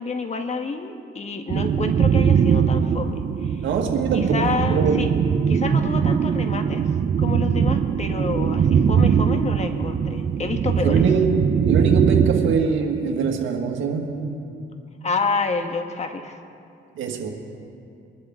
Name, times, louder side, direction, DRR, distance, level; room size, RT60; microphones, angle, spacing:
voice 1, 0.0-3.7 4.1-5.1 5.5-6.9 7.2-11.0 15.0-16.4, left 4 dB, 35° left, 6 dB, 1.4 m, -28 dB
sound 1, 1.5-12.6, right 7 dB, 40° right, 0.5 m, -21 dB
voice 2, 3.6-4.4 4.7-5.0 10.8-11.3 11.6-14.4 17.0-17.3, right 5 dB, 75° right, 2 dB, 1.8 m, -23 dB
23.0 x 11.5 x 3.7 m, 2.5 s
cardioid pair, 90°, 20 cm